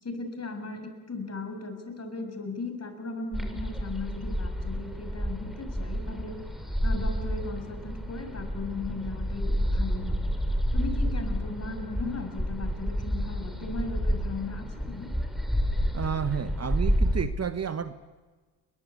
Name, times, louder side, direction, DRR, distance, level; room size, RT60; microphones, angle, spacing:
voice 1, 0.0-6.4 6.8-10.3 10.7-15.1, left 3 dB, 30° left, 7 dB, 7.2 m, -37 dB
sound 1, 3.3-17.2, equal, ahead, 4.8 m, -29 dB
voice 2, 15.9-17.9, right 7 dB, 30° right, 12 dB, 1.3 m, -31 dB
30.0 x 23.0 x 8.4 m, 1.3 s
hypercardioid pair, 55°, 48 cm